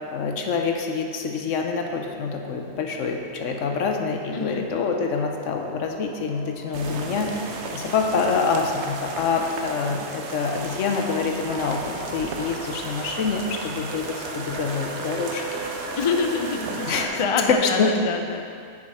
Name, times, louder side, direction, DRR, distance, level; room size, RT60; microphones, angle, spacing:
voice 1, 0.1-7.3 7.7-15.4 16.8-17.2 17.5-17.9, left 5 dB, 80° left, 3 dB, 1.1 m, -26 dB
sound 1, 2.7-17.5, right 2 dB, 85° right, 2.0 m, -39 dB
voice 2, 4.3-4.7 16.0-16.8 17.2-18.4, left 5 dB, 55° left, 5 dB, 0.3 m, -25 dB
sound 2, 6.7-17.1, right 4 dB, 70° right, 1.0 m, -35 dB
7.3 x 6.2 x 4.9 m, 2.3 s
omnidirectional pair, 1.3 m